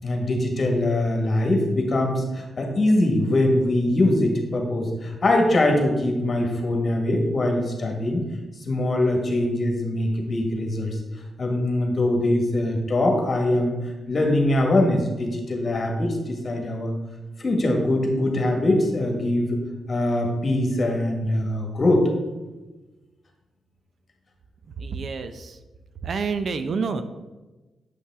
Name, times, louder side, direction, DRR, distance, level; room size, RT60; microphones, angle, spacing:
voice 1, 0.0-8.2 8.7-11.0 11.4-13.8 14.1-16.9 17.4-19.6 19.9-22.1, left 1 dB, 45° left, 2 dB, 1.6 m, -22 dB
voice 2, 24.8-25.6 26.0-27.0, right 5 dB, 60° right, 10 dB, 0.5 m, -28 dB
8.2 x 5.5 x 3.6 m, 1.1 s
cardioid pair, 75°, 0 cm